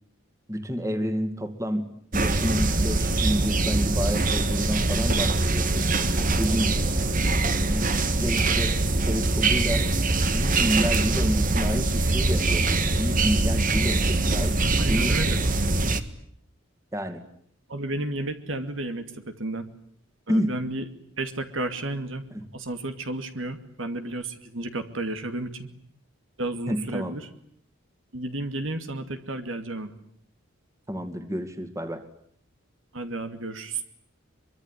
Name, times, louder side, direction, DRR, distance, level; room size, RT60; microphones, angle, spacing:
voice 1, 0.5-5.9 6.4-6.8 7.6-8.8 9.0-9.9 10.3-15.4 16.9-17.2 20.3-20.6 22.3-22.5 26.7-27.2 30.9-32.0, equal, 15° right, 7 dB, 2.6 m, -29 dB
sound 1, 2.1-16.0, right 2 dB, 45° right, 1.7 m, -23 dB
voice 2, 14.8-15.4 17.7-19.7 20.3-20.8 21.2-22.2 22.5-25.7 26.4-27.2 28.1-30.0 32.9-33.8, right 2 dB, 70° right, 8 dB, 2.5 m, -32 dB
24.0 x 24.0 x 9.9 m, 0.65 s
head